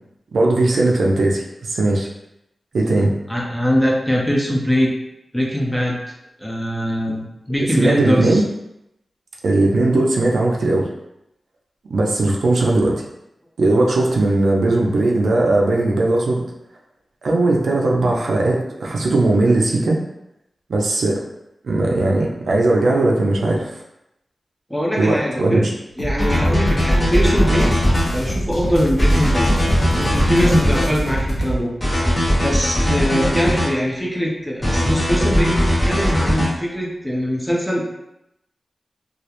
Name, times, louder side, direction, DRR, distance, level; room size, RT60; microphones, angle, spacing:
voice 1, 0.3-1.4 1.7-2.1 2.7-3.1 7.8-8.4 9.4-10.9 11.8-13.0 13.6-16.4 17.2-20.0 20.7-21.2 21.6-23.8 25.0-25.7, right 2 dB, 85° right, -1 dB, 0.4 m, -18 dB
voice 2, 3.3-4.9 5.3-6.0 6.4-8.4 24.7-25.7 26.0-27.8 28.1-29.5 30.0-31.7 32.4-37.8, equal, 5° left, -3 dB, 0.5 m, -22 dB
sound 1, 26.0-31.6, equal, 85° left, 0.5 m, -25 dB
sound 2, 26.2-28.1 29.0-30.9 31.8-33.7 34.6-36.5, equal, 25° left, 0.9 m, -18 dB
2.3 x 2.0 x 2.8 m, 0.85 s
wide cardioid pair, 100°, 0 cm